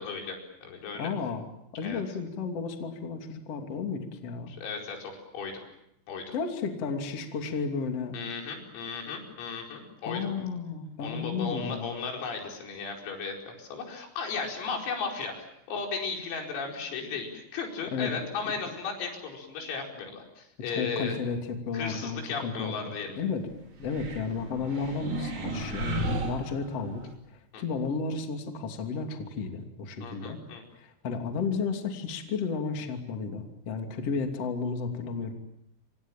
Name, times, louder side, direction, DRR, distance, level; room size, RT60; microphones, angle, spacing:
voice 1, 0.0-1.1 1.8-2.0 4.5-5.6 6.1-6.4 8.1-10.3 11.0-21.2 21.7-23.2 27.5-27.6 30.0-30.6, left 5 dB, 85° left, 1 dB, 7.5 m, -35 dB
voice 2, 0.9-1.5 1.7-4.6 6.3-8.2 10.0-11.9 17.9-18.1 18.4-18.5 20.7-22.7 23.2-23.4 23.8-27.1 27.6-30.4 30.8-35.3, left 5 dB, 35° left, 4 dB, 3.1 m, -33 dB
sound 1, 23.8-27.1, right 2 dB, 40° right, 4.2 m, -35 dB
28.5 x 26.0 x 7.4 m, 0.81 s
omnidirectional pair, 5.9 m